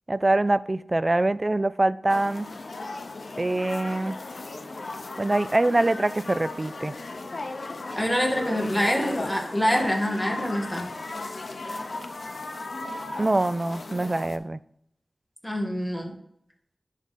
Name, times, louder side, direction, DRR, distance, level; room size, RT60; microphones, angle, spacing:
voice 1, 0.1-2.5 3.4-4.2 5.2-6.9 13.2-14.6, right 2 dB, 35° right, 15 dB, 0.3 m, -24 dB
sound 1, 2.1-14.4, left 2 dB, 70° left, 0.6 m, -36 dB
voice 2, 7.9-10.9 15.4-16.1, equal, 5° left, 0 dB, 1.7 m, -25 dB
10.5 x 3.6 x 4.1 m, 0.75 s
wide cardioid pair, 80°, 0 cm